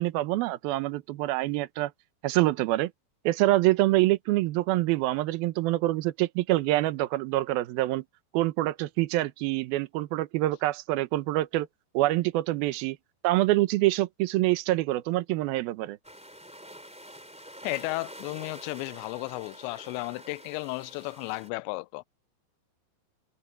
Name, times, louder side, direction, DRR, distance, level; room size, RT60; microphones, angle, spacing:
voice 1, 0.0-1.9 2.2-2.9 3.2-8.0 8.3-11.7 11.9-13.0 13.2-16.0, right 17 dB, 75° right, 2.2 m, -26 dB
sound 1, 16.0-21.5, equal, ahead, 2.2 m, -47 dB
voice 2, 17.6-22.0, left 24 dB, 85° left, 2.6 m, -34 dB
omnidirectional pair, 5.4 m